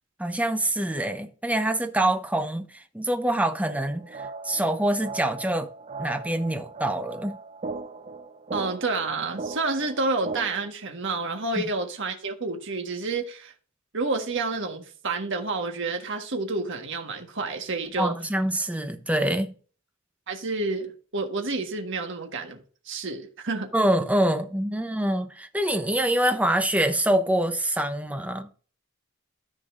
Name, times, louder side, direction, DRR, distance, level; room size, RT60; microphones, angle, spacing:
voice 1, 0.2-5.7 6.0-7.4 18.0-19.5 23.7-28.5, right 1 dB, 5° right, 0.8 m, -25 dB
sound 1, 3.7-10.7, right 3 dB, 30° right, 0.5 m, -38 dB
voice 2, 8.5-13.5 13.9-18.1 20.3-23.7, right 3 dB, 60° right, 1.5 m, -29 dB
13.5 x 5.4 x 2.6 m
head